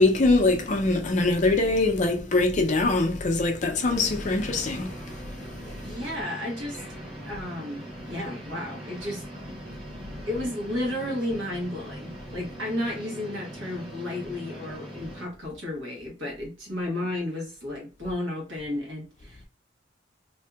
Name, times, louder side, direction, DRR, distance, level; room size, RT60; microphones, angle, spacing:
voice 1, 0.0-5.9, left 2 dB, 40° left, 0.5 m, -23 dB
sound 1, 3.8-15.3, right 1 dB, 30° right, 1.0 m, -41 dB
voice 2, 5.8-6.8 7.3-9.2 10.1-19.5, left 1 dB, 90° right, 1.2 m, -33 dB
2.6 x 2.6 x 2.3 m
head